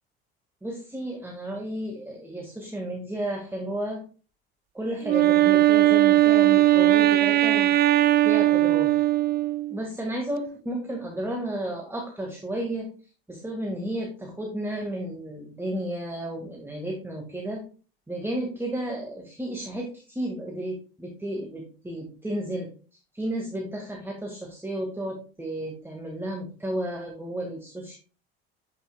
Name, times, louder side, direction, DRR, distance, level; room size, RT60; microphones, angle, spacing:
voice 1, 0.6-4.0 4.7-7.7 8.2-8.9 9.7-12.9 13.3-17.6 18.1-22.7 23.1-28.0, right 1 dB, 10° right, 0 dB, 1.9 m, -32 dB
Wind instrument woodwind instrument, 5.0-9.8, right 15 dB, 35° right, 0.4 m, -19 dB
9.1 x 5.7 x 2.3 m, 0.37 s
hypercardioid pair, 70°, 30 cm